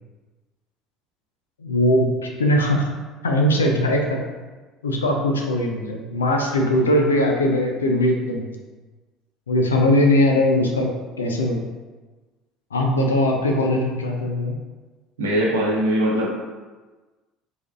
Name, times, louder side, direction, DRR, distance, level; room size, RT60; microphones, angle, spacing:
voice 1, 1.6-2.9 3.2-4.4 4.8-8.5 9.5-10.9 11.2-11.6 12.7-14.6, left 1 dB, 85° left, 1 dB, 0.4 m, -20 dB
voice 2, 15.2-16.3, equal, 80° right, -5 dB, 0.9 m, -21 dB
4.7 x 3.3 x 2.4 m, 1.3 s
figure-of-eight pair, 60°, 0 cm